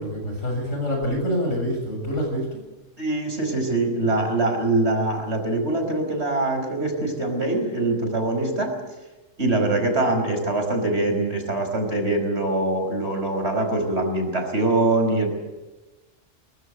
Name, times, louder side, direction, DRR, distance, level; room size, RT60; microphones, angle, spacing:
voice 1, 0.0-2.6, equal, 85° left, 2 dB, 7.9 m, -26 dB
voice 2, 3.0-8.7 9.4-15.3, right 2 dB, 60° right, 4 dB, 5.5 m, -23 dB
23.0 x 20.0 x 8.2 m, 1.1 s
omnidirectional pair, 1.3 m